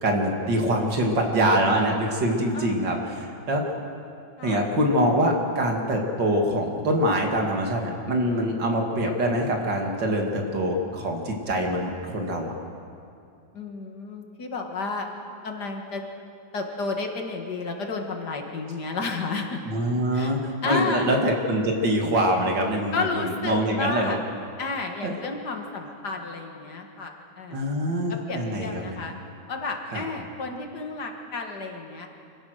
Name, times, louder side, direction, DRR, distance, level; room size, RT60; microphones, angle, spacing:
voice 1, 0.0-3.7 4.4-12.5 19.7-24.2 25.0-25.1 27.5-29.0 29.9-30.0, right 1 dB, 65° right, 2 dB, 2.8 m, -24 dB
voice 2, 13.5-15.1 15.4-16.0 16.5-19.6 20.1-20.4 20.6-21.1 22.9-24.2 24.6-27.6 28.3-29.1 29.5-32.1, left 3 dB, 60° left, 3 dB, 2.2 m, -31 dB
26.5 x 16.0 x 6.5 m, 2.5 s
omnidirectional pair, 2.1 m